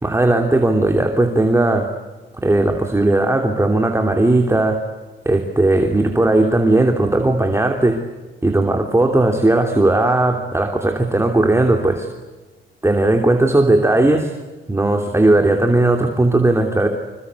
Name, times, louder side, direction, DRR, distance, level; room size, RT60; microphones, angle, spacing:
voice 1, 0.0-1.9 2.4-4.8 5.2-8.0 8.4-12.1 12.8-14.3 14.7-16.9, right 2 dB, 15° right, 4 dB, 3.1 m, -16 dB
27.0 x 25.0 x 8.3 m, 1.2 s
cardioid pair, 90°, 20 cm